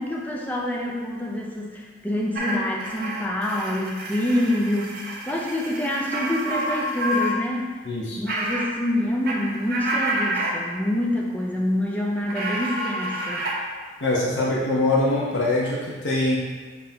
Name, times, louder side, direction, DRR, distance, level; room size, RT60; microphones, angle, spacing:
voice 1, 0.0-7.7 8.2-13.4, left 1 dB, 10° left, -2 dB, 0.5 m, -26 dB
sound 1, 2.3-7.3 7.6-7.7 8.3-8.7 9.0-10.5 12.3-13.6, right 1 dB, 55° right, 0.6 m, -29 dB
voice 2, 7.8-8.2 14.0-16.4, left 2 dB, 70° left, -5 dB, 0.8 m, -23 dB
6.9 x 2.7 x 2.8 m, 1.4 s
head